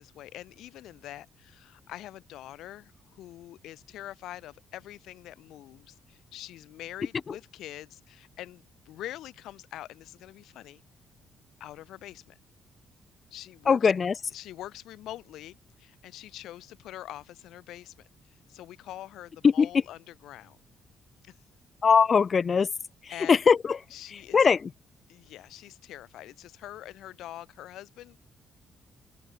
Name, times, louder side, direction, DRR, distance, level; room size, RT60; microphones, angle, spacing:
voice 1, 0.0-10.8 11.6-12.4 13.3-13.8 14.3-17.9 18.2-20.6 21.2-21.4 23.1-23.4 23.9-24.5 25.1-28.2, left 14 dB, 85° left, 5.7 m, -44 dB
voice 2, 13.7-14.1 19.4-19.7 21.8-22.7 23.3-23.8 24.3-24.7, left 6 dB, 40° left, 0.3 m, -21 dB
open air
cardioid pair, 90°, 0 cm